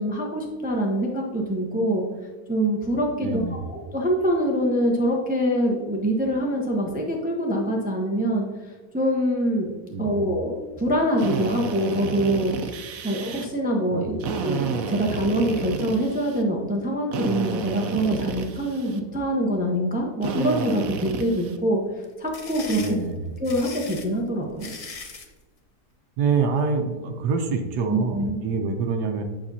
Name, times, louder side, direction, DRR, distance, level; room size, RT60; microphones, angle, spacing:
voice 1, 0.0-2.0 2.5-3.4 3.7-8.4 8.9-12.6 13.0-14.1 14.4-21.8 22.2-22.8 23.4-24.7 27.9-28.4, equal, 10° right, 0 dB, 0.6 m, -24 dB
voice 2, 3.2-3.6 9.9-10.3 13.9-14.3 22.8-23.3 26.2-29.2, right 4 dB, 85° right, 4 dB, 1.3 m, -26 dB
Drill, 11.2-13.5 14.2-16.4 17.1-19.0 20.2-21.6, right 5 dB, 65° right, 1.0 m, -31 dB
sound 1, 22.0-25.3, left 4 dB, 65° left, 0.3 m, -39 dB
8.8 x 6.7 x 2.7 m, 1.3 s
omnidirectional pair, 1.7 m